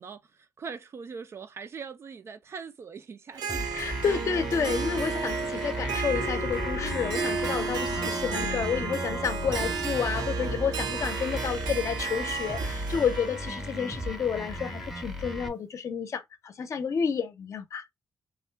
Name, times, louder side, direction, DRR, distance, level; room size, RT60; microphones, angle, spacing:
voice 1, 0.0-3.8, right 5 dB, 40° right, 0.4 m, -42 dB
Harp, 3.3-15.2, right 5 dB, 85° right, 0.8 m, -34 dB
sound 1, 3.5-15.5, right 1 dB, ahead, 0.7 m, -35 dB
voice 2, 3.7-17.9, left 6 dB, 45° left, 0.7 m, -30 dB
sound 2, 6.1-10.8, left 9 dB, 80° left, 0.4 m, -42 dB
3.5 x 2.2 x 3.3 m
cardioid pair, 135°, 7 cm